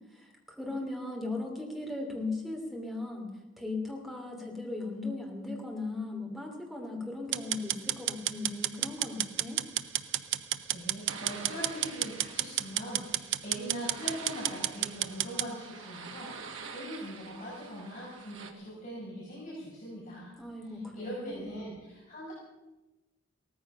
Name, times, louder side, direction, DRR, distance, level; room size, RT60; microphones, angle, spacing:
voice 1, 0.1-3.3 3.6-9.6 20.4-21.6, left 2 dB, ahead, 0 dB, 2.8 m, -38 dB
sound 1, 7.3-15.5, right 12 dB, 60° right, 0.6 m, -31 dB
voice 2, 10.7-20.3 20.6-22.3, equal, 40° left, -7 dB, 5.7 m, -41 dB
sound 2, 11.1-18.5, right 5 dB, 80° right, 1.8 m, -47 dB
18.0 x 14.5 x 5.6 m, 1.1 s
head